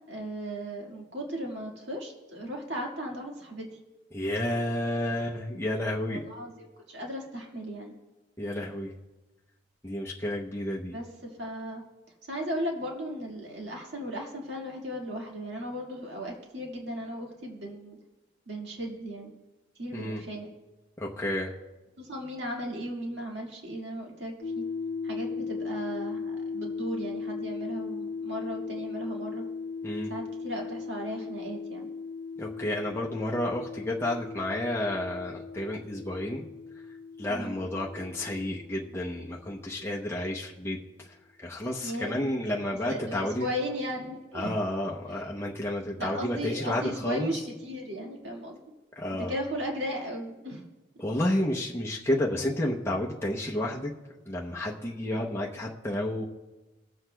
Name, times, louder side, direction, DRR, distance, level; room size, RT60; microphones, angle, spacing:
voice 1, 0.0-3.8 6.1-7.9 10.9-11.8 12.3-18.0 18.5-19.3 19.8-20.5 22.0-24.6 25.0-29.4 30.1-31.9 37.3-37.6 41.8-42.3 42.9-44.5 46.0-48.6 49.3-50.6, equal, 70° right, 0 dB, 1.9 m, -36 dB
voice 2, 4.1-6.2 8.4-8.9 9.8-11.0 19.9-20.2 21.0-21.5 29.8-30.1 32.4-36.5 37.2-43.5 44.3-47.4 49.0-49.3 51.0-53.9 54.3-56.2, left 1 dB, 15° left, -3 dB, 0.7 m, -31 dB
sound 1, 24.4-39.9, left 5 dB, 55° left, 0.5 m, -38 dB
22.0 x 7.8 x 2.2 m, 1.1 s
head